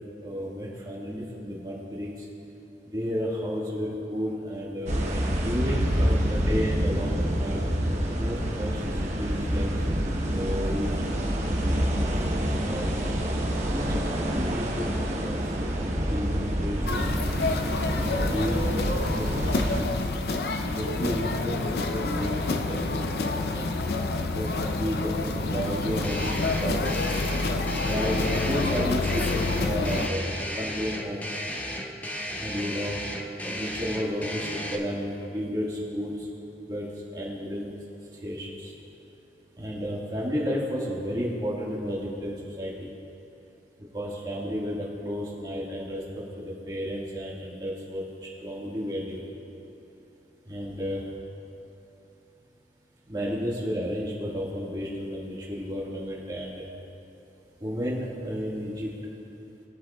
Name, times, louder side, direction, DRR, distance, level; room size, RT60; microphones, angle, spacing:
voice 1, 0.2-2.1 2.9-4.9 5.4-7.6 8.2-9.9 10.3-10.9 12.3-12.9 13.7-14.9 15.1-15.4 16.0-17.1 17.9-18.9 19.2-20.0 20.7-22.8 23.2-23.7 24.3-27.0 27.8-30.2 30.5-31.3 32.3-33.0 33.4-36.3 36.7-37.7 38.2-38.7 39.6-42.9 43.9-49.2 50.5-51.0 53.1-56.7 57.6-58.9, equal, 25° right, -5 dB, 1.8 m, -32 dB
sound 1, 4.9-19.8, equal, 40° right, 1.0 m, -27 dB
sound 2, 16.9-30.1, left 3 dB, 60° left, 0.5 m, -28 dB
sound 3, 26.0-34.8, equal, 10° left, 0.6 m, -35 dB
22.0 x 7.6 x 2.4 m, 2.9 s
head